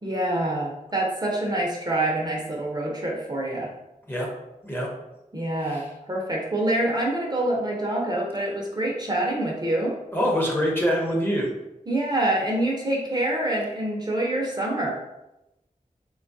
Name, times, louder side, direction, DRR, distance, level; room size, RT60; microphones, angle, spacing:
voice 1, 0.0-3.7 5.3-10.0 11.9-14.9, right 1 dB, 30° right, -2 dB, 0.6 m, -26 dB
voice 2, 10.1-11.5, equal, 15° left, -2 dB, 0.7 m, -25 dB
3.2 x 2.3 x 2.6 m, 0.92 s
wide cardioid pair, 60°, 14 cm